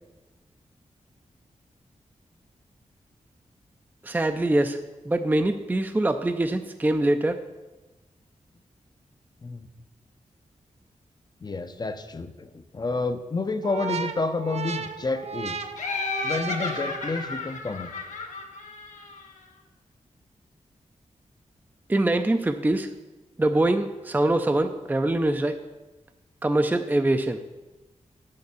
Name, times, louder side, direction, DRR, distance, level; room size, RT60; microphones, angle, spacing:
voice 1, 4.0-4.8 5.1-7.4 21.9-22.9 23.4-25.6 26.4-27.4, right 1 dB, 15° right, 7 dB, 0.5 m, -23 dB
voice 2, 11.4-15.6 16.2-17.9, left 3 dB, 35° left, 10 dB, 0.7 m, -30 dB
sound 1, 13.6-17.5, right 6 dB, 60° right, 0.7 m, -35 dB
Laughter, 15.8-19.4, left 4 dB, 80° left, 1.4 m, -33 dB
9.1 x 6.6 x 7.0 m, 1.1 s
wide cardioid pair, 105°, 13 cm